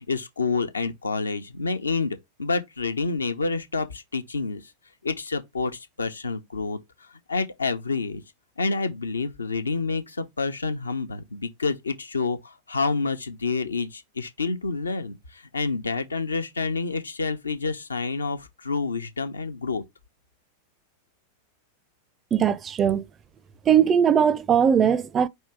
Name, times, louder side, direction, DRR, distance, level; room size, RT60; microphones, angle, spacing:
voice 1, 0.1-4.6 5.0-6.8 7.3-8.2 8.6-15.2 15.5-19.8, left 4 dB, 75° left, 0.8 m, -28 dB
voice 2, 22.3-23.0 23.7-25.3, right 8 dB, 25° right, 0.5 m, -20 dB
5.5 x 2.9 x 3.3 m
figure-of-eight pair, 90°, 0 cm